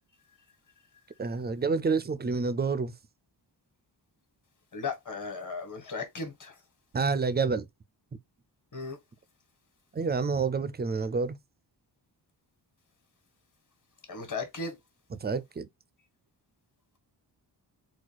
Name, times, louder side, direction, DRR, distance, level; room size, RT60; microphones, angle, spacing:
voice 1, 1.2-2.9 6.9-7.7 9.9-11.4 15.1-15.7, right 4 dB, 25° right, 0.4 m, -28 dB
voice 2, 4.7-6.5 8.7-9.0 14.1-14.7, left 4 dB, 45° left, 1.5 m, -36 dB
4.2 x 2.3 x 4.5 m
wide cardioid pair, 130°, 43 cm